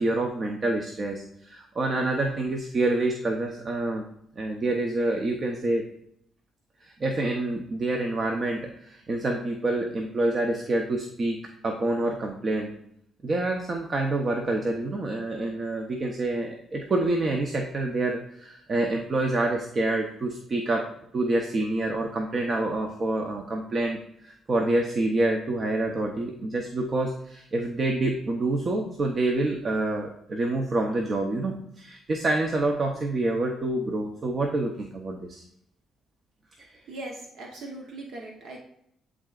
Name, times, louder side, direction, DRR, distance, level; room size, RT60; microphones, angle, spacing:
voice 1, 0.0-4.0 4.4-5.8 6.8-12.7 13.2-35.4, right 2 dB, 40° right, 3 dB, 0.7 m, -27 dB
voice 2, 36.9-38.6, right 2 dB, 70° right, 0 dB, 1.0 m, -39 dB
11.0 x 3.8 x 2.4 m, 0.73 s
cardioid pair, 90°, 0 cm